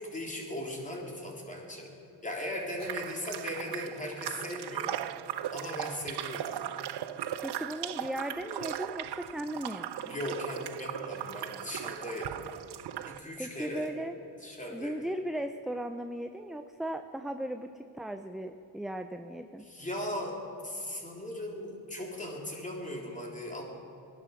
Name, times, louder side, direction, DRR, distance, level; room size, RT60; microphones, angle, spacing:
voice 1, 0.0-1.9 2.2-5.0 5.5-6.6 10.1-12.5 13.1-13.9 14.4-15.0 19.7-20.4 20.6-23.6, left 1 dB, 15° left, -2 dB, 3.7 m, -38 dB
sound 1, 2.8-13.2, right 11 dB, 60° right, 0.7 m, -38 dB
voice 2, 7.4-10.1 13.4-14.1 14.7-19.6, right 1 dB, ahead, 7 dB, 0.5 m, -37 dB
19.5 x 11.0 x 5.9 m, 2.8 s
cardioid pair, 75°, 45 cm